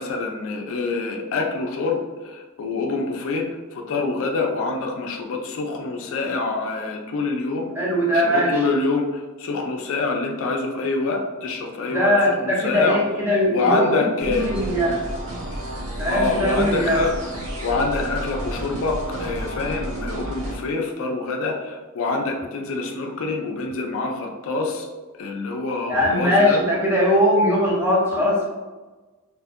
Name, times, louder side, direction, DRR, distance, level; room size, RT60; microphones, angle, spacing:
voice 1, 0.0-7.7 8.1-13.0 13.5-14.5 16.1-17.1 17.6-24.9 25.2-26.6 28.1-28.2, left 3 dB, 65° left, 2 dB, 0.4 m, -26 dB
voice 2, 7.7-8.7 11.9-15.0 16.0-17.1 25.9-28.4, equal, 10° right, -4 dB, 0.5 m, -20 dB
sound 1, 14.2-20.6, right 1 dB, 80° right, 0.8 m, -31 dB
2.6 x 2.4 x 2.4 m, 1.2 s
head